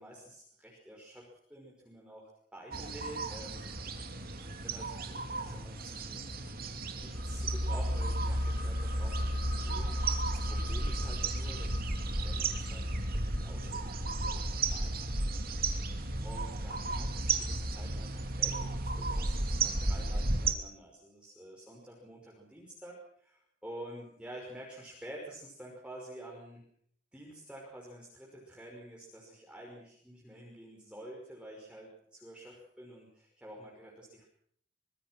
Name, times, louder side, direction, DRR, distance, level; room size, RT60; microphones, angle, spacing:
voice 1, 0.0-4.0 4.4-6.3 7.0-15.0 15.5-26.6 27.1-34.2, right 1 dB, 5° right, -3 dB, 5.7 m, -49 dB
sound 1, 2.7-20.5, right 3 dB, 55° right, 2.9 m, -35 dB
sound 2, 7.1-18.5 18.8-18.9, equal, 75° right, 5.1 m, -36 dB
25.5 x 21.0 x 6.3 m, 0.65 s
head